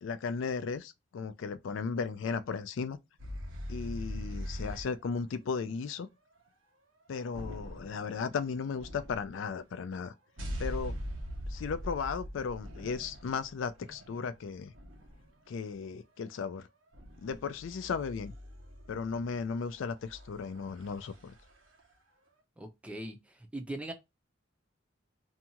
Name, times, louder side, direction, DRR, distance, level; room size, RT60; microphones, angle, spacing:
voice 1, 0.0-3.0 3.7-6.1 7.1-10.1 10.6-11.0 11.5-14.7 15.5-16.7 17.2-18.3 18.9-21.3, left 5 dB, 75° left, 0.4 m, -35 dB
sound 1, 3.2-5.0 7.3-8.2 8.8-9.6 10.4-15.5 16.9-21.8, equal, 90° right, 1.0 m, -42 dB
voice 2, 22.6-23.9, right 1 dB, 5° right, 0.5 m, -40 dB
2.7 x 2.3 x 2.8 m
head